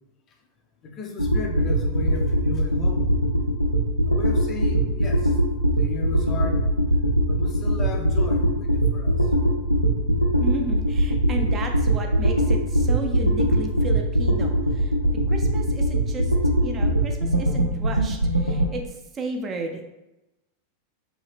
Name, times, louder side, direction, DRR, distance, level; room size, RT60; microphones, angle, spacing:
voice 1, 0.8-3.0 4.1-5.3 5.8-6.6 7.3-9.3, left 3 dB, 25° left, 2 dB, 0.5 m, -35 dB
sound 1, 1.2-18.7, right 1 dB, 90° right, 0.4 m, -22 dB
voice 2, 10.4-14.9 15.3-16.3 16.6-19.8, right 3 dB, 25° right, 3 dB, 0.4 m, -33 dB
2.8 x 2.7 x 3.2 m, 0.97 s
figure-of-eight pair, 90°, 0 cm